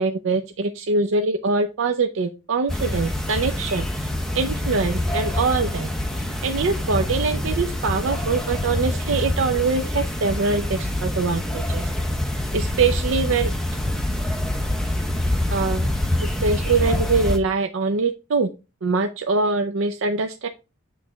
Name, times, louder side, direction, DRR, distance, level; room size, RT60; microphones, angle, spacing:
voice 1, 0.0-4.1 4.3-11.8 12.5-13.5 13.9-14.0 15.5-15.9 16.2-18.5 18.8-20.5, right 4 dB, 65° right, 6 dB, 0.5 m, -23 dB
sound 1, 2.7-17.4, left 1 dB, ahead, 0.7 m, -25 dB
8.2 x 3.2 x 3.8 m, 0.29 s
head